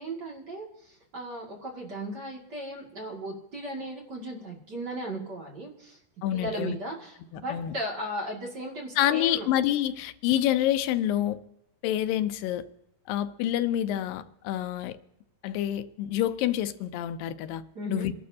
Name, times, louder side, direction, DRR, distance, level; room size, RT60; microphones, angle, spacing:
voice 1, 0.0-6.0 6.3-9.5 17.7-18.1, right 1 dB, 35° right, 2.4 m, -36 dB
voice 2, 6.2-6.8 7.3-7.7 9.0-11.4 11.8-12.6 13.1-15.0 15.4-17.6 17.9-18.1, left 12 dB, 85° left, 2.3 m, -27 dB
27.0 x 12.0 x 2.8 m
omnidirectional pair, 4.0 m